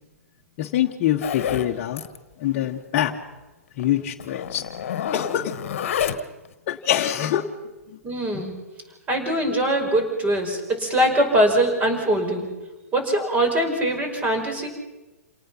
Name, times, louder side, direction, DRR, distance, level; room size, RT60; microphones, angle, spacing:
voice 1, 0.6-2.0 2.4-3.2 3.8-4.7 5.1-5.6 6.7-7.5 7.9-8.0 8.3-8.4, left 11 dB, 40° left, 0 dB, 1.4 m, -24 dB
Zipper (clothing), 1.2-1.7 2.0-2.2 2.5-2.6 2.9-3.0 3.8-3.9 4.2-6.5, left 8 dB, 60° left, 1.5 m, -28 dB
voice 2, 8.0-8.5 9.1-12.5 12.9-14.7, right 1 dB, 20° right, 5 dB, 5.6 m, -22 dB
28.5 x 18.5 x 5.8 m, 1.1 s
hypercardioid pair, 120°, 8 cm